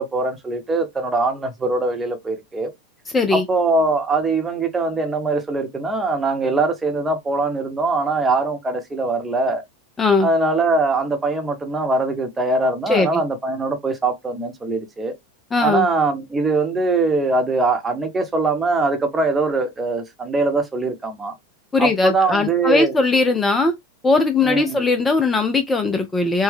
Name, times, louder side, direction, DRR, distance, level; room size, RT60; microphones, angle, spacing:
voice 1, 0.0-2.7 3.3-9.6 10.2-15.1 15.6-21.3 21.8-22.9 24.4-24.8, right 3 dB, 15° right, 0.9 m, -22 dB
voice 2, 3.1-3.5 10.0-10.3 12.9-13.2 15.5-15.9 21.7-23.7 24.0-26.4, left 3 dB, 15° left, 0.4 m, -19 dB
4.4 x 2.1 x 3.5 m
figure-of-eight pair, 90°, 0 cm